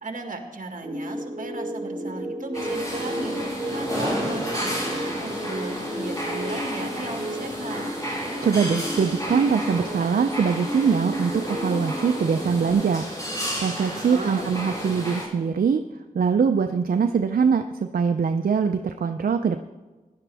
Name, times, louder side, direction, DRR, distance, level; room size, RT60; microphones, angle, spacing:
voice 1, 0.0-3.3 3.7-7.8 13.9-14.5, right 2 dB, 60° right, 4 dB, 1.9 m, -35 dB
sound 1, 0.8-12.7, equal, 15° right, 4.0 m, -33 dB
sound 2, 2.5-15.2, equal, 25° left, 4.6 m, -32 dB
voice 2, 8.4-13.1 13.6-15.8 16.1-19.6, right 6 dB, 80° right, 7 dB, 0.5 m, -22 dB
17.5 x 11.0 x 3.5 m, 1.2 s
wide cardioid pair, 80°, 15 cm